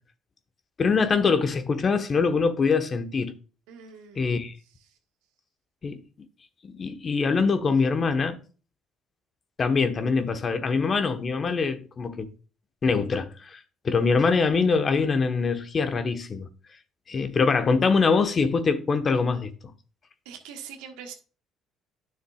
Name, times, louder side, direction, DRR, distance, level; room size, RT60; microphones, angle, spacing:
voice 1, 0.8-3.3 4.1-4.5 5.8-6.0 6.7-8.4 9.6-12.3 12.8-13.6 13.8-16.5 17.1-19.5, left 4 dB, 40° left, 1.1 m, -23 dB
voice 2, 3.7-4.3 20.2-21.1, right 7 dB, 80° right, 1.4 m, -42 dB
10.0 x 6.5 x 2.4 m
supercardioid pair, 65°, 0 cm